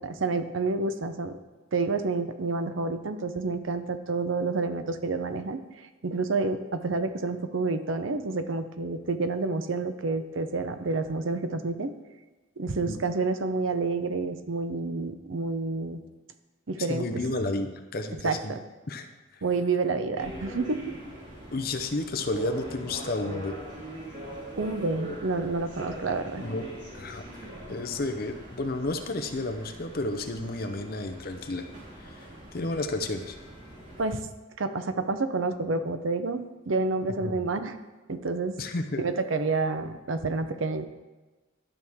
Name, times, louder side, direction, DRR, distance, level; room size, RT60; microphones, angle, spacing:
voice 1, 0.0-1.4 1.7-5.6 6.0-11.9 12.6-16.0 16.7-17.2 18.2-18.6 19.4-20.8 24.6-26.4 34.0-34.2 34.6-37.8 38.1-38.6 39.0-40.9, right 3 dB, 70° right, 9 dB, 0.7 m, -29 dB
voice 2, 16.8-18.6 18.9-19.4 21.5-23.6 26.4-26.7 26.9-27.2 27.7-31.7 32.0-33.4 37.2-37.4 38.6-39.0, left 2 dB, 45° left, 7 dB, 0.7 m, -32 dB
sound 1, 20.2-34.0, right 1 dB, 35° right, 3.3 m, -42 dB
12.0 x 6.3 x 3.6 m, 1.2 s
head